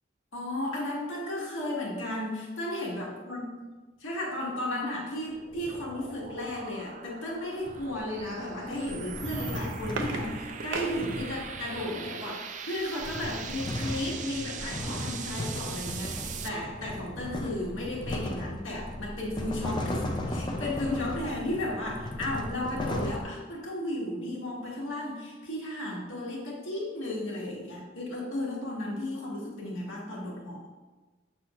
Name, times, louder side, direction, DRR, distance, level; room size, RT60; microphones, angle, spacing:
voice 1, 0.3-3.4 4.0-30.7, left 1 dB, 90° left, -3 dB, 1.8 m, -34 dB
sound 1, 4.5-16.5, right 7 dB, 40° right, 0.3 m, -42 dB
sound 2, 5.3-6.7 7.7-12.2 12.8-23.2, left 1 dB, 25° left, 0.6 m, -37 dB
sound 3, 9.6-11.7 13.3-14.2 14.7-14.8 15.0-15.3, right 3 dB, 80° right, 0.7 m, -38 dB
6.9 x 6.1 x 2.5 m, 1.3 s
head